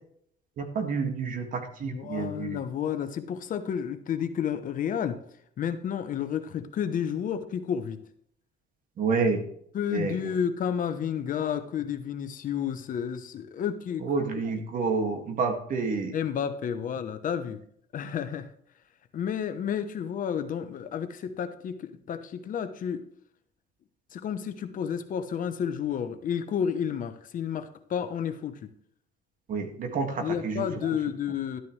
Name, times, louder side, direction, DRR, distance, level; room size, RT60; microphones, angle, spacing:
voice 1, 0.6-2.6 9.0-9.4 9.9-10.3 14.0-16.1 29.5-30.6, right 4 dB, 55° right, 4 dB, 2.2 m, -29 dB
voice 2, 1.8-5.2 5.6-8.0 9.7-14.0 14.5-14.6 16.1-17.6 17.9-18.5 19.1-23.0 24.1-28.7 30.2-31.6, left 8 dB, 55° left, 9 dB, 1.1 m, -31 dB
12.5 x 9.3 x 3.3 m, 0.66 s
cardioid pair, 110°, 17 cm